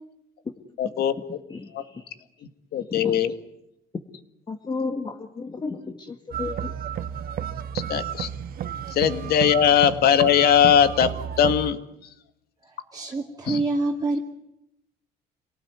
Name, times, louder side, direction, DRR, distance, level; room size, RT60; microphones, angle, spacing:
voice 1, 0.8-1.4 1.7-1.8 2.7-3.3 7.9-8.3 8.9-11.1 11.4-11.8 13.5-13.6, left 9 dB, 70° left, 10 dB, 2.1 m, -20 dB
voice 2, 1.5-2.0 3.0-3.1 4.5-6.7, left 4 dB, 25° left, 5 dB, 1.8 m, -33 dB
sound 1, 6.3-11.7, right 9 dB, 60° right, 1.4 m, -32 dB
voice 3, 12.6-14.2, right 2 dB, 20° right, 1 dB, 2.5 m, -27 dB
27.5 x 18.5 x 9.5 m, 0.83 s
cardioid pair, 110°, 17 cm